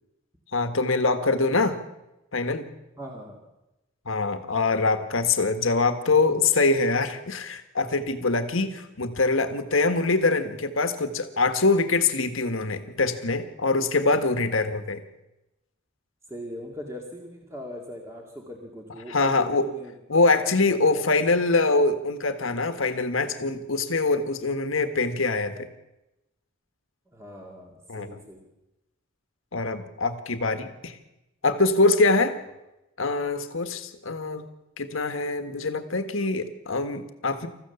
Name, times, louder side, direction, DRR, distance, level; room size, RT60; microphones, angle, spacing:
voice 1, 0.5-1.8 2.3-2.7 4.0-15.0 19.1-19.7 20.1-25.7 27.9-28.1 29.5-31.0 31.4-32.4 33.0-34.4 34.8-37.5, left 3 dB, 75° left, 9 dB, 1.6 m, -24 dB
voice 2, 3.0-3.4 14.1-14.2 16.3-19.9 20.7-21.0 27.1-28.4, equal, 15° right, 0 dB, 2.2 m, -40 dB
27.5 x 14.5 x 7.1 m, 0.98 s
head